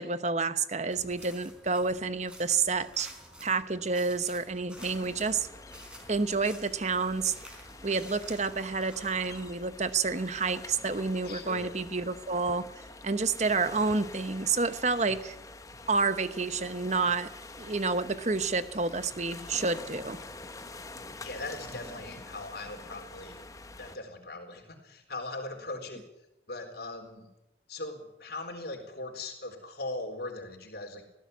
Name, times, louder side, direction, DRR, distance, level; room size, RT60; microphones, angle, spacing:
voice 1, 0.0-3.1 3.4-5.5 6.1-7.3 7.8-12.6 13.0-15.3 15.9-17.3 17.6-20.2, right 4 dB, 40° right, 12 dB, 1.0 m, -29 dB
sound 1, 0.9-9.5, equal, 5° right, 4.6 m, -51 dB
sound 2, 4.8-24.0, left 2 dB, 20° left, 1.0 m, -47 dB
voice 2, 11.2-11.8 21.2-23.4 23.8-26.0 26.5-27.3 27.7-31.0, left 2 dB, 60° left, 2 dB, 4.1 m, -40 dB
19.5 x 15.0 x 9.5 m, 0.88 s
head